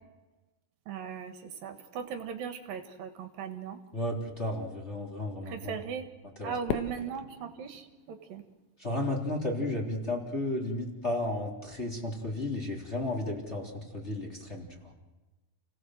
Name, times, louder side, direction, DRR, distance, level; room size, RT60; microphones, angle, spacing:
voice 1, 0.9-3.8 5.5-6.1 6.4-8.4, right 7 dB, 70° right, 7 dB, 3.1 m, -38 dB
voice 2, 3.9-5.7 6.4-6.5 8.8-14.9, left 1 dB, 20° left, -1 dB, 3.5 m, -33 dB
Fireworks, 6.7-9.0, left 8 dB, 85° left, 3.3 m, -39 dB
30.0 x 18.0 x 7.8 m, 1.2 s
omnidirectional pair, 4.3 m